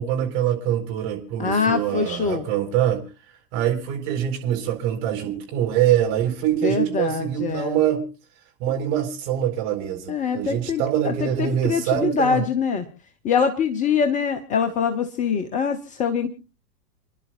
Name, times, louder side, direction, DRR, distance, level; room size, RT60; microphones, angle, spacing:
voice 1, 0.0-3.0 3.5-8.0 8.6-12.4, right 10 dB, 40° right, 2 dB, 4.5 m, -24 dB
voice 2, 1.4-2.5 6.6-7.8 10.1-12.8 13.2-16.4, left 6 dB, 15° left, 8 dB, 0.7 m, -24 dB
30.0 x 11.0 x 2.5 m, 0.32 s
figure-of-eight pair, 100°, 49 cm